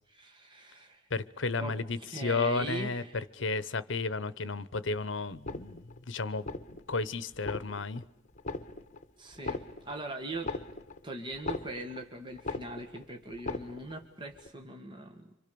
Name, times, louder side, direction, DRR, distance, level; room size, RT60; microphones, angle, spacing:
voice 1, 0.1-1.1 1.6-3.3 9.2-10.5 11.0-15.3, right 2 dB, 25° right, 3 dB, 1.7 m, -41 dB
voice 2, 1.1-3.0 3.4-6.5 6.7-8.0, left 3 dB, 65° left, 16 dB, 0.9 m, -33 dB
sound 1, 5.3-6.0 6.4-7.0 7.3-8.0 8.4-9.0 9.3-12.1 12.4-13.0 13.3-14.0 14.4-14.5, left 3 dB, 40° left, 1.4 m, -39 dB
26.5 x 26.0 x 6.9 m, 0.84 s
head